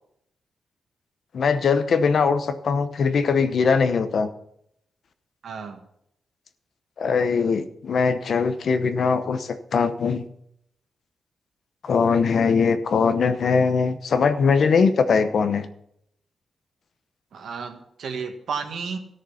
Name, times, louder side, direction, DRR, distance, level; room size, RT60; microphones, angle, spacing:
voice 1, 1.3-4.3 7.0-10.2 11.8-15.7, left 5 dB, 55° left, 10 dB, 0.9 m, -21 dB
voice 2, 5.4-5.8 17.3-19.0, right 5 dB, 70° right, 5 dB, 1.6 m, -32 dB
14.0 x 6.7 x 5.8 m, 0.73 s
wide cardioid pair, 140°, 0 cm